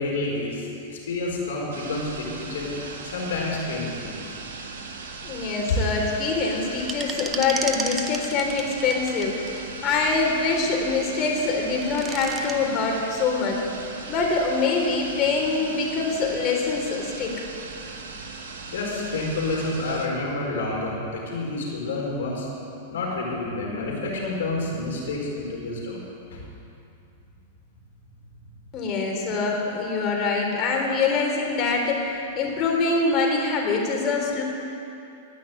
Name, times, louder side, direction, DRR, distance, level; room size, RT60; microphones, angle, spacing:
voice 1, 0.0-2.7 3.0-4.2 18.7-22.5 22.9-26.0 26.3-26.4, left 2 dB, 75° left, -2 dB, 4.5 m, -29 dB
sound 1, 1.7-20.1, right 4 dB, 75° right, 1.9 m, -39 dB
voice 2, 5.2-13.6 14.1-17.3 28.7-34.4, left 4 dB, 40° left, 0 dB, 3.6 m, -24 dB
sound 2, 6.8-9.6 11.6-12.6, right 4 dB, 20° right, 1.1 m, -33 dB
18.0 x 6.3 x 9.8 m, 2.8 s
hypercardioid pair, 110°, 0 cm